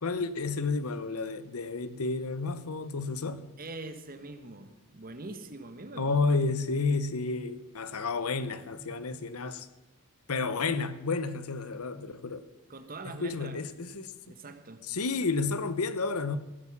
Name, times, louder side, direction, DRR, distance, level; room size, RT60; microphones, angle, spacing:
voice 1, 0.0-3.4 6.0-9.7 10.3-12.4 13.0-14.1 14.9-16.4, left 4 dB, 75° left, 0.9 m, -31 dB
voice 2, 3.6-6.5 12.7-13.6 14.2-14.8, right 2 dB, 40° right, 1.3 m, -43 dB
15.5 x 8.2 x 7.2 m
head